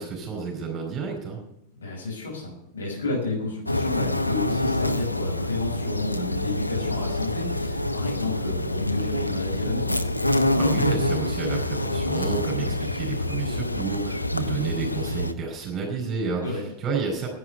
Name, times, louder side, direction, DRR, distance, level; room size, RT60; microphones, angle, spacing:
voice 1, 0.0-1.4 10.6-17.3, right 5 dB, 25° right, 1 dB, 4.5 m, -30 dB
voice 2, 1.7-10.0 12.6-12.7 16.4-16.6, left 2 dB, 70° left, -1 dB, 5.8 m, -31 dB
sound 1, 3.7-15.3, left 1 dB, 85° left, 0.8 m, -26 dB
11.0 x 9.8 x 9.3 m, 0.80 s
figure-of-eight pair, 90°, 0 cm